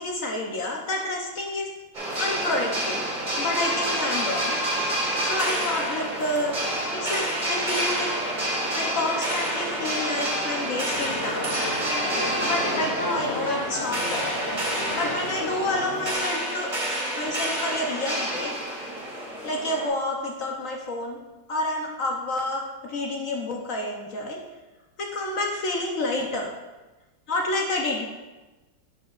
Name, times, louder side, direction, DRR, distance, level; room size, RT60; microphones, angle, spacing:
voice 1, 0.0-1.7 2.2-3.1 3.4-4.6 5.2-6.5 6.9-8.1 8.7-11.5 12.4-14.4 14.9-16.7 17.2-18.5 19.4-21.2 21.5-24.4 25.0-26.5 27.3-28.1, left 2 dB, 60° left, 0 dB, 0.9 m, -29 dB
sound 1, 1.9-19.9, right 1 dB, 25° right, 1.7 m, -28 dB
sound 2, 10.9-16.1, left 1 dB, 35° left, 2.1 m, -33 dB
9.4 x 6.6 x 2.4 m, 1.2 s
omnidirectional pair, 2.1 m